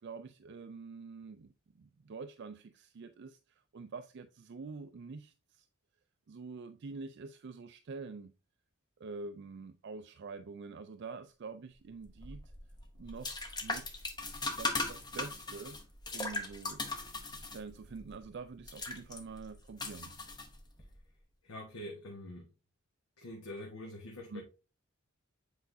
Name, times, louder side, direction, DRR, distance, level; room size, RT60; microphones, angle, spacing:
voice 1, 0.0-5.7 6.3-8.3 9.0-12.4 13.0-14.1 14.6-15.8 16.1-16.8 17.4-20.2 24.3-24.4, right 4 dB, 50° right, 0.4 m, -46 dB
sound 1, 12.1-20.9, left 2 dB, 20° left, 0.8 m, -39 dB
voice 2, 21.4-22.5 23.2-24.4, left 1 dB, 75° left, 1.3 m, -45 dB
8.0 x 4.8 x 2.6 m
head